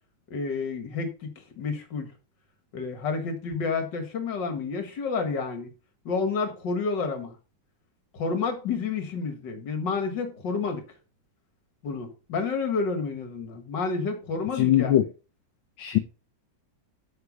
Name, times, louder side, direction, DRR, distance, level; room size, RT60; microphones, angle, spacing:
voice 1, 0.3-2.1 2.7-5.7 6.1-7.4 8.1-10.8 11.8-15.0, left 4 dB, 60° left, 2.4 m, -30 dB
voice 2, 14.5-15.0 15.8-16.0, left 12 dB, 75° left, 1.5 m, -21 dB
8.1 x 5.8 x 5.4 m
omnidirectional pair, 2.2 m